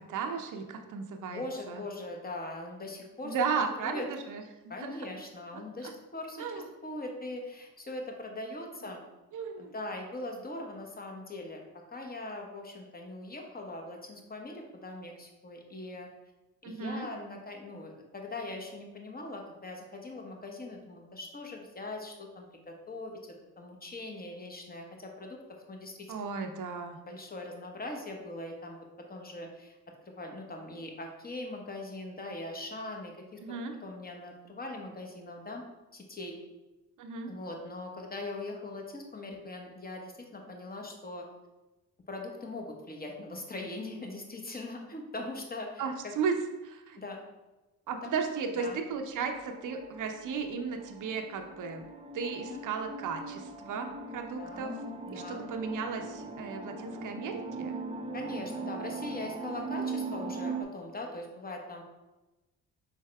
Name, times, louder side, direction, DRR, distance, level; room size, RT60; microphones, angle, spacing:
voice 1, 0.0-1.8 3.2-4.4 4.8-5.1 5.8-5.9 6.4-6.6 9.3-9.7 16.6-17.1 26.1-27.0 33.4-33.7 37.0-37.3 45.8-46.3 46.6-47.0 47.9-51.9 52.1-54.7 55.1-57.8, right 5 dB, 50° right, 5 dB, 0.7 m, -35 dB
voice 2, 1.3-3.3 3.8-4.1 4.7-6.4 6.8-9.0 9.6-16.1 16.6-23.2 23.6-25.4 25.7-26.1 27.0-29.8 30.1-33.4 33.8-35.6 35.9-36.4 37.3-41.3 42.1-45.8 47.0-47.2 48.0-48.2 48.6-48.8 52.3-52.6 54.4-55.5 58.1-61.8, left 2 dB, 25° left, 2 dB, 1.0 m, -41 dB
sound 1, 49.3-60.6, right 3 dB, 15° right, 0.6 m, -40 dB
4.6 x 3.9 x 2.3 m, 1.1 s
hypercardioid pair, 50°, 39 cm